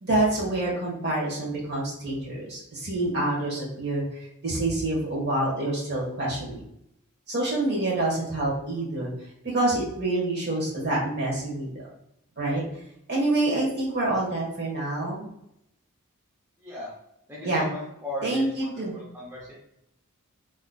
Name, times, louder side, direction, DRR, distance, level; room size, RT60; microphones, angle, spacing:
voice 1, 0.0-6.6 7.3-9.1 9.4-11.7 12.4-12.6 13.1-15.2 17.4-17.7 18.2-18.9, right 2 dB, 50° right, -4 dB, 1.2 m, -27 dB
voice 2, 17.3-19.5, equal, 10° right, -6 dB, 0.5 m, -37 dB
3.8 x 3.0 x 2.2 m, 0.79 s
head